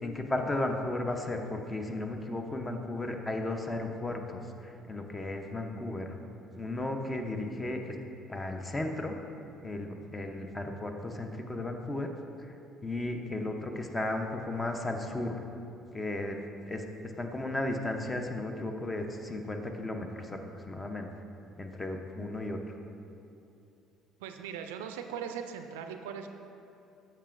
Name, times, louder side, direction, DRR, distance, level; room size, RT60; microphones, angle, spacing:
voice 1, 0.0-6.2 6.6-7.9 8.3-9.1 9.6-12.1 12.8-15.4 15.9-16.4 16.6-16.9 17.2-20.4 20.7-21.1 21.6-22.6, left 2 dB, 25° left, 4 dB, 0.7 m, -34 dB
voice 2, 24.2-26.3, right 7 dB, 80° right, 6 dB, 0.3 m, -39 dB
8.5 x 5.9 x 2.5 m, 2.7 s
hypercardioid pair, 60°, 0 cm